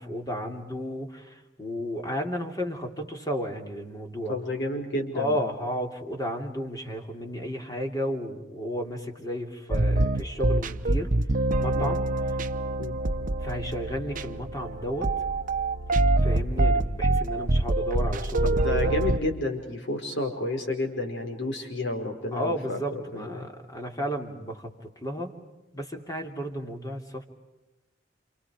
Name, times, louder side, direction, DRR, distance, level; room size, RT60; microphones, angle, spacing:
voice 1, 0.0-4.3 5.1-11.1 11.6-12.1 13.4-15.1 16.2-18.9 22.3-25.3 25.7-27.2, equal, 20° left, 3 dB, 3.1 m, -33 dB
voice 2, 4.3-5.4 11.7-12.0 12.8-13.0 18.6-23.5, left 2 dB, 65° left, 4 dB, 5.2 m, -31 dB
sound 1, 9.7-19.2, right 2 dB, 45° right, 0.9 m, -25 dB
29.5 x 28.5 x 5.0 m, 1.1 s
head